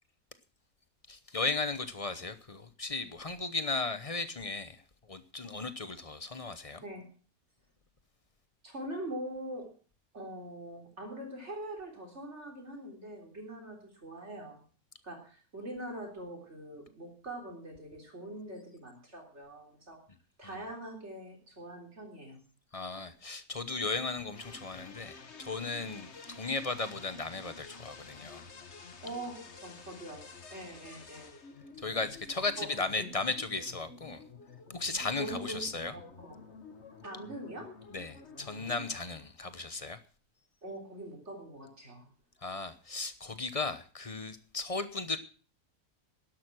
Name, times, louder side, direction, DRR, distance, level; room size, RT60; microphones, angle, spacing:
voice 1, 1.1-6.8 20.4-20.6 22.7-28.5 31.8-34.2 34.7-35.9 37.9-40.0 42.4-45.2, left 3 dB, 30° left, 0.8 m, -36 dB
voice 2, 8.6-9.7 10.1-14.6 15.0-20.0 20.4-22.4 29.0-30.2 30.5-31.4 32.6-32.7 33.0-33.1 35.2-35.6 35.9-36.4 37.0-37.7 40.6-42.0, right 1 dB, 50° right, 3.8 m, -43 dB
sound 1, 24.3-39.0, left 4 dB, 50° left, 1.7 m, -50 dB
12.0 x 11.0 x 6.1 m
omnidirectional pair, 1.5 m